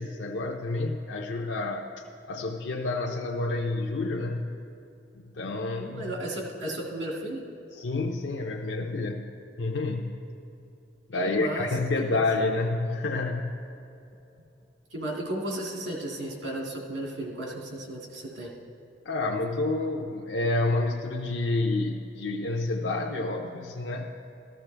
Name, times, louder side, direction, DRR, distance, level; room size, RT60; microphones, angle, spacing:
voice 1, 0.0-1.9 2.3-4.5 5.1-6.1 7.7-10.2 11.1-13.5 19.0-24.1, left 2 dB, 75° left, 0 dB, 0.6 m, -29 dB
voice 2, 5.7-7.5 11.2-11.7 12.0-12.3 14.9-18.5, right 1 dB, 90° right, -1 dB, 2.2 m, -34 dB
14.0 x 13.0 x 3.3 m, 2.8 s
head